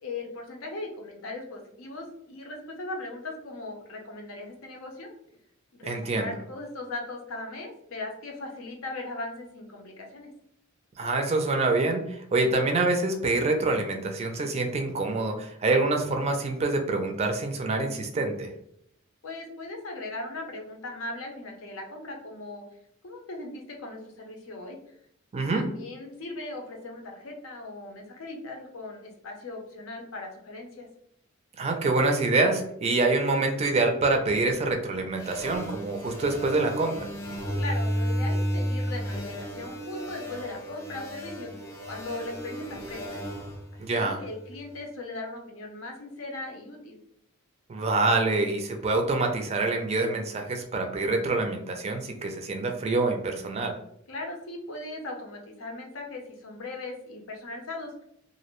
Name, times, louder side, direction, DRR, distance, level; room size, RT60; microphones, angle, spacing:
voice 1, 0.0-5.1 5.7-10.3 19.2-22.6 23.0-25.0 25.5-30.9 37.6-41.5 41.9-43.2 43.9-47.0 54.1-58.0, left 2 dB, 80° left, 2 dB, 0.6 m, -38 dB
voice 2, 5.8-6.3 11.0-18.5 25.3-25.7 31.6-37.1 43.8-44.2 47.7-53.8, right 3 dB, 30° right, 4 dB, 0.4 m, -26 dB
sound 1, 35.2-44.6, equal, 15° left, 0.6 m, -33 dB
2.5 x 2.0 x 2.9 m, 0.71 s
head